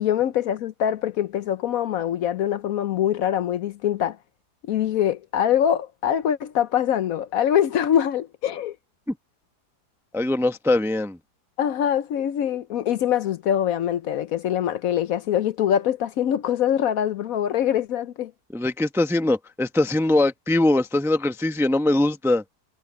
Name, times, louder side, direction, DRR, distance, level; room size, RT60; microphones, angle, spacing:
voice 1, 0.0-4.2 4.7-8.8 11.6-18.3, left 10 dB, 70° left, 1.0 m, -23 dB
voice 2, 10.1-11.2 18.5-22.4, left 2 dB, ahead, 0.6 m, -22 dB
omnidirectional pair, 1.7 m